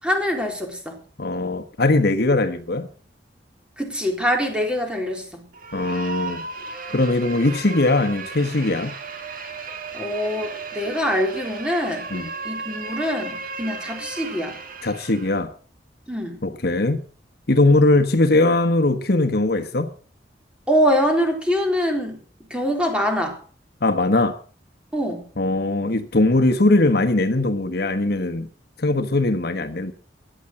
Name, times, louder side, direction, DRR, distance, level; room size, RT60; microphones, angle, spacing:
voice 1, 0.0-1.0 3.8-5.4 9.9-12.0 12.4-14.6 16.1-16.4 20.7-22.2 22.5-23.4 24.9-25.2, equal, 5° right, 4.0 m, -24 dB
voice 2, 1.2-2.9 5.7-6.4 6.9-8.9 12.1-12.3 14.8-15.5 16.4-17.0 17.5-19.9 23.8-24.4 25.4-28.5 28.8-29.9, left 2 dB, 60° left, 1.3 m, -20 dB
sound 1, 5.5-15.4, right 4 dB, 50° right, 2.4 m, -35 dB
14.5 x 10.5 x 7.6 m
head